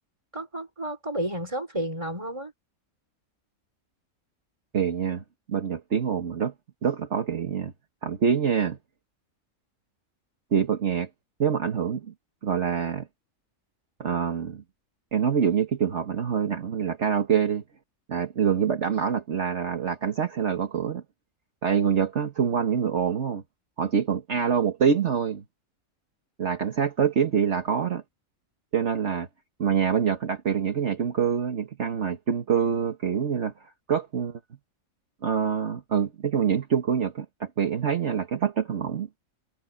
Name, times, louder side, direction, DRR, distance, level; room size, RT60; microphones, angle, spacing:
voice 1, 0.3-2.5, right 1 dB, 20° right, 4.3 m, -31 dB
voice 2, 4.7-6.5 6.8-7.7 8.0-8.8 10.5-11.1 11.4-12.1 12.4-13.1 14.0-14.6 15.1-17.6 18.1-21.0 21.6-23.4 23.8-25.4 26.4-28.0 28.7-29.3 29.6-34.4 35.2-39.1, right 7 dB, 55° right, 1.6 m, -25 dB
omnidirectional pair, 1.5 m